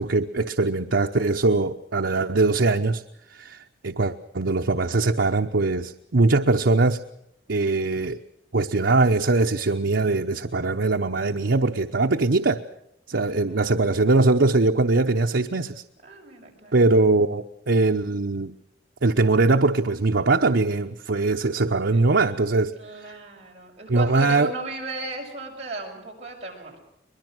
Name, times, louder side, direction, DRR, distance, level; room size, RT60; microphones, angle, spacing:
voice 1, 0.0-3.0 3.3-7.0 7.5-8.2 8.5-12.6 13.1-15.8 16.7-18.5 19.0-22.7 23.0-23.1 23.9-24.5, right 3 dB, 90° right, 4 dB, 0.9 m, -21 dB
voice 2, 11.1-11.5 13.1-13.7 16.0-16.9 21.9-22.1 22.8-26.8, right 3 dB, 35° right, -1 dB, 6.3 m, -36 dB
23.0 x 21.5 x 6.3 m, 0.80 s
head